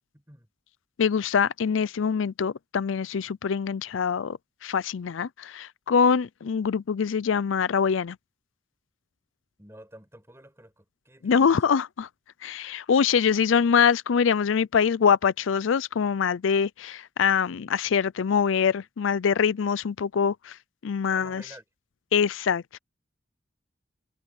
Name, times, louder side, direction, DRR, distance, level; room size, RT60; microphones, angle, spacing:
voice 1, 0.1-0.5 9.6-11.8 21.1-21.6, right 1 dB, 15° right, 7.2 m, -50 dB
voice 2, 1.0-8.2 11.2-12.1 12.4-20.6 20.8-21.4 22.1-22.8, left 6 dB, 85° left, 0.4 m, -24 dB
head